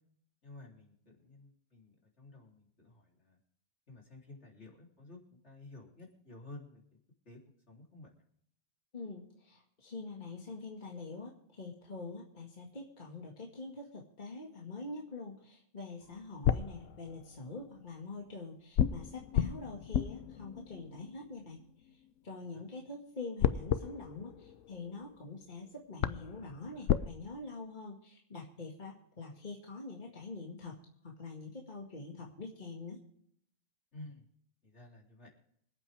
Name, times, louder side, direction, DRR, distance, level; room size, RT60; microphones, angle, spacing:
voice 1, 0.4-3.4 3.9-7.0 7.3-7.4 7.7-8.2 22.5-22.7 33.9-34.2 34.6-35.3, left 2 dB, 60° left, -1 dB, 3.8 m, -53 dB
voice 2, 8.9-21.6 22.2-30.8 31.0-33.0, left 3 dB, 40° left, -1 dB, 2.1 m, -45 dB
sound 1, 16.0-17.6 18.8-22.1 23.4-25.3 25.6-25.7 26.0-27.1, left 9 dB, 80° left, 1.0 m, -34 dB
26.0 x 8.8 x 3.4 m, 0.69 s
omnidirectional pair, 1.3 m